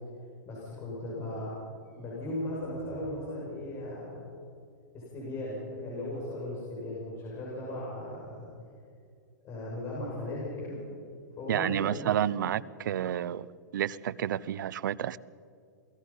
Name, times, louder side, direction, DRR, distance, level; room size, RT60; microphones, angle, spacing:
voice 1, 0.5-1.5 1.9-4.3 4.9-8.5 9.4-10.8 11.4-12.0, left 1 dB, 25° left, 6.5 m, -37 dB
voice 2, 11.5-13.5 13.7-15.2, right 10 dB, 75° right, 0.7 m, -30 dB
28.0 x 19.0 x 5.6 m
hypercardioid pair, 145°, 10 cm